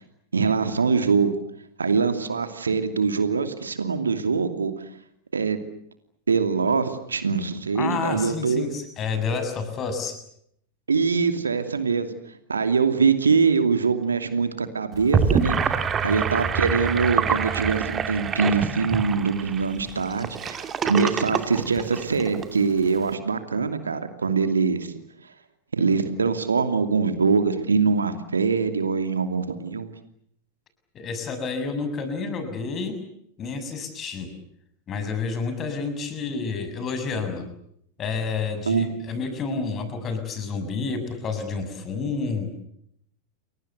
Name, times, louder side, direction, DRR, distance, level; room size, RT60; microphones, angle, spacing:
voice 1, 0.3-1.3 1.8-4.7 5.3-5.6 6.3-8.7 10.9-12.1 12.5-15.6 16.0-24.9 25.7-29.9 38.7-38.9, right 5 dB, 75° right, 9 dB, 2.7 m, -23 dB
voice 2, 7.8-10.1 31.0-33.0 33.4-34.3 34.9-37.4 38.0-42.5, left 4 dB, 30° left, 9 dB, 6.8 m, -29 dB
Gurgling / Sink (filling or washing), 14.9-22.5, right 6 dB, 25° right, 2.5 m, -26 dB
30.0 x 23.0 x 8.1 m, 0.72 s
figure-of-eight pair, 90°, 0 cm